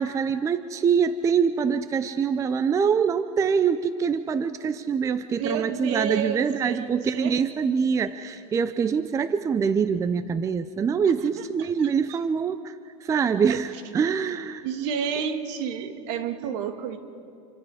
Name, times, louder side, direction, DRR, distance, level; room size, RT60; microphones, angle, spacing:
voice 1, 0.0-12.7 13.0-14.6, right 6 dB, 20° right, 13 dB, 0.6 m, -24 dB
voice 2, 5.4-6.9 7.1-7.4 11.8-12.2 13.5-13.6 14.6-17.0, right 7 dB, 60° right, 7 dB, 2.0 m, -30 dB
27.0 x 25.0 x 4.9 m, 2.7 s
supercardioid pair, 125°, 17 cm